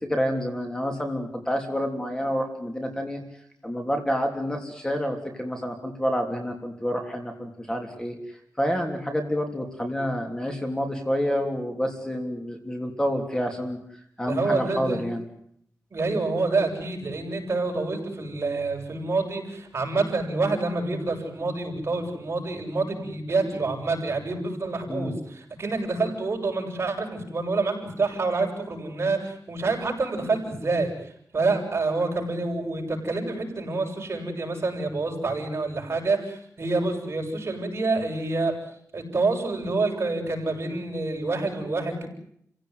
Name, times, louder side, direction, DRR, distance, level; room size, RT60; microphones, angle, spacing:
voice 1, 0.0-3.2 3.6-8.1 8.6-13.8 14.2-15.2 24.9-25.2, equal, 10° left, 4 dB, 3.2 m, -28 dB
voice 2, 14.3-15.1 15.9-30.9 31.3-38.5 38.9-42.1, right 3 dB, 45° right, 3 dB, 7.2 m, -27 dB
30.0 x 17.0 x 9.5 m, 0.70 s
wide cardioid pair, 165°, 6 cm